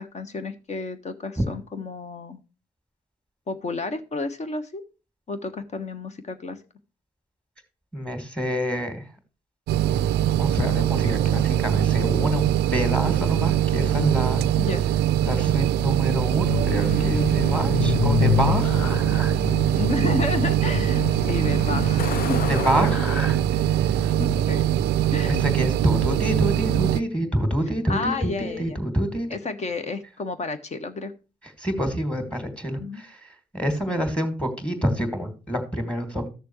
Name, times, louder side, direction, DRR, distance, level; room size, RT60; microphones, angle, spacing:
voice 1, 0.0-2.4 3.5-4.8 5.3-6.6 14.6-14.8 19.8-22.4 24.2-24.7 25.1-25.4 27.9-28.8 29.3-31.1 32.8-33.0 33.9-34.0, left 3 dB, 35° left, 10 dB, 1.3 m, -31 dB
voice 2, 7.9-9.0 10.4-14.4 15.2-19.4 22.5-23.4 23.7-24.1 25.2-29.3 31.6-36.3, equal, 5° left, 7 dB, 2.6 m, -27 dB
sound 1, 9.7-27.0, right 12 dB, 60° right, 0.4 m, -22 dB
Truck, 16.3-25.1, left 10 dB, 50° left, 0.6 m, -29 dB
13.5 x 6.7 x 3.1 m, 0.32 s
hypercardioid pair, 50°, 19 cm